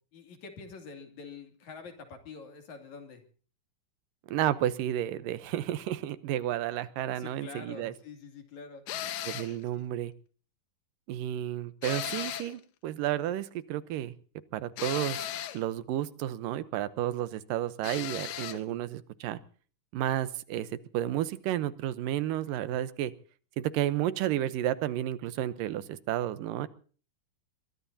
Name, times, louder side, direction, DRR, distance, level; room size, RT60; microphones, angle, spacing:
voice 1, 0.1-3.2 7.0-8.8 9.7-9.9, left 5 dB, 60° left, 5 dB, 3.9 m, -46 dB
voice 2, 4.3-7.9 9.3-10.1 11.1-14.1 14.5-15.3 15.5-19.4 19.9-20.7 20.9-23.1 23.6-26.7, right 12 dB, 85° right, 14 dB, 2.6 m, -31 dB
sound 1, 8.9-9.6 11.8-12.6 14.8-15.6 17.8-18.6, left 12 dB, 90° left, 2.8 m, -36 dB
23.0 x 21.5 x 2.8 m, 0.41 s
omnidirectional pair, 3.8 m